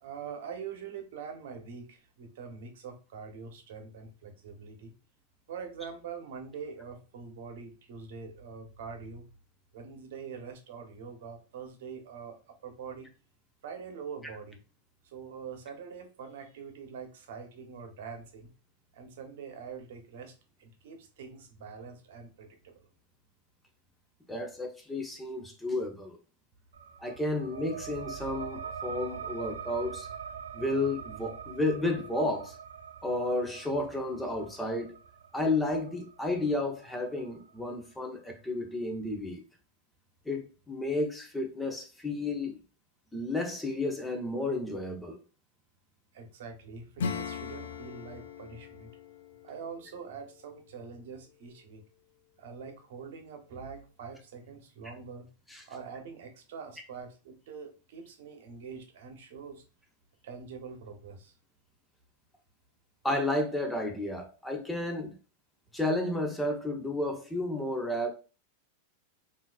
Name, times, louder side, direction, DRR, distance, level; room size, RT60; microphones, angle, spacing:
voice 1, 0.0-4.9 5.5-9.3 9.7-12.4 12.6-13.1 13.6-14.6 15.0-18.5 18.9-20.3 20.6-22.9 46.1-48.9 49.4-51.8 52.4-55.3 55.6-59.6 60.2-61.3, right 6 dB, 70° right, 0.9 m, -44 dB
voice 2, 24.3-26.2 27.0-30.1 30.5-32.6 33.0-35.0 35.3-39.4 40.3-42.6 43.1-45.2 55.5-55.6 63.0-65.1 65.7-68.1, left 2 dB, 10° left, 0.8 m, -32 dB
sound 1, 26.7-37.9, right 7 dB, 85° right, 0.4 m, -44 dB
Acoustic guitar / Strum, 47.0-51.3, left 6 dB, 75° left, 0.4 m, -40 dB
3.7 x 2.7 x 2.4 m
hypercardioid pair, 110°, 0 cm